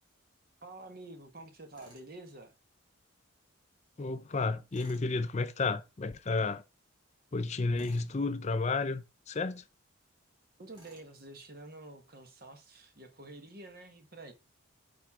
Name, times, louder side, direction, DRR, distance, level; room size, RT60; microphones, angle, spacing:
voice 1, 0.6-2.5 10.6-14.3, right 2 dB, 45° right, 1.3 m, -49 dB
Tools, 1.7-2.1 4.7-5.1 7.7-8.1 10.7-11.1, right 1 dB, 25° right, 4.2 m, -58 dB
voice 2, 4.0-6.6 7.3-9.6, left 3 dB, 35° left, 0.4 m, -32 dB
9.2 x 4.4 x 3.6 m
head